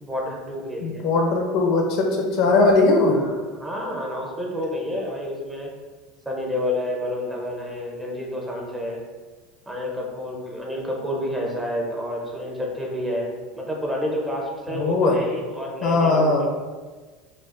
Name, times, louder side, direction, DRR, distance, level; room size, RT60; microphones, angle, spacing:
voice 1, 0.0-1.0 3.1-5.7 6.3-9.0 9.7-16.5, left 1 dB, 10° right, -2 dB, 0.6 m, -29 dB
voice 2, 0.8-3.3 14.7-15.2 15.8-16.5, left 3 dB, 50° left, 2 dB, 0.6 m, -19 dB
5.9 x 2.4 x 2.5 m, 1.4 s
supercardioid pair, 160°, 0 cm